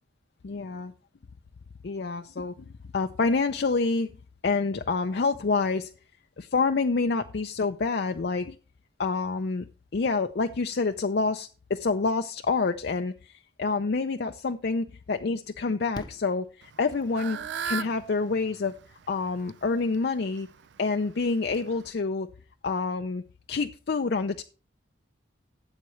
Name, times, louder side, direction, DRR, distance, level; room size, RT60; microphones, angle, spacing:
voice 1, 0.4-0.9 1.8-2.7 2.9-4.1 4.4-5.9 6.4-8.6 9.0-9.7 9.9-13.3 13.6-18.8 19.1-20.5 20.8-22.3 22.6-23.2 23.5-24.4, left 4 dB, 55° left, 0.5 m, -27 dB
Fireworks, 15.9-17.3 19.0-19.1 19.3-19.4, left 1 dB, 20° left, 0.8 m, -44 dB
Fowl / Bird, 16.6-21.9, right 6 dB, 70° right, 0.4 m, -39 dB
13.0 x 8.1 x 3.1 m
head